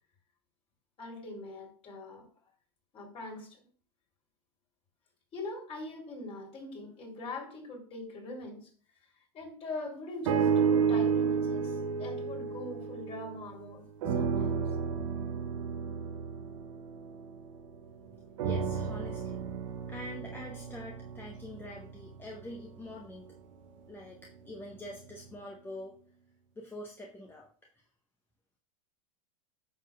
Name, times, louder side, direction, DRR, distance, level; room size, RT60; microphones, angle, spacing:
voice 1, 1.0-2.3 2.9-3.6 5.3-8.7 9.3-14.5 15.2-15.3, left 2 dB, 35° left, 3.6 m, -42 dB
sound 1, 10.2-13.6 14.0-17.7 18.4-22.6 23.3-23.4, right 6 dB, 65° right, 1.1 m, -32 dB
voice 2, 18.4-19.4 19.9-23.3 23.9-25.9 26.6-27.5, left 1 dB, 10° left, 1.2 m, -45 dB
9.8 x 6.7 x 2.4 m
hypercardioid pair, 95°, 18 cm